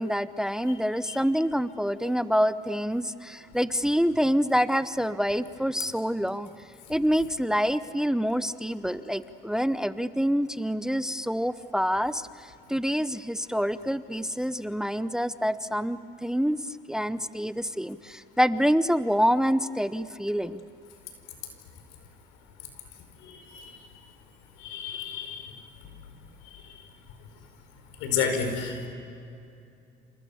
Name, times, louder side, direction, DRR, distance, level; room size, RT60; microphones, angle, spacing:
voice 1, 0.0-6.5 6.9-16.6 16.9-20.6, equal, 5° right, 13 dB, 0.8 m, -26 dB
voice 2, 23.2-23.7 24.6-25.5 28.0-28.9, left 6 dB, 90° left, 6 dB, 5.0 m, -31 dB
29.0 x 28.5 x 7.1 m, 2.6 s
supercardioid pair, 95°, 20 cm